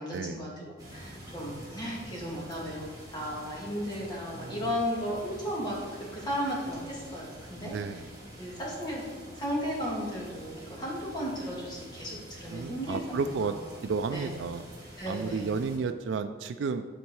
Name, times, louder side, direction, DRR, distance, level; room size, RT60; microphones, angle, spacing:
voice 1, 0.0-8.0 8.4-9.0 9.4-13.6 14.1-14.3 15.0-15.5, equal, 25° left, -4 dB, 2.0 m, -35 dB
sound 1, 0.8-15.8, equal, 20° right, 2.1 m, -47 dB
voice 2, 4.4-4.7 7.6-8.1 12.5-13.6 13.8-14.7 15.1-16.9, right 5 dB, 75° right, 8 dB, 0.3 m, -32 dB
10.5 x 4.4 x 4.7 m, 1.5 s
head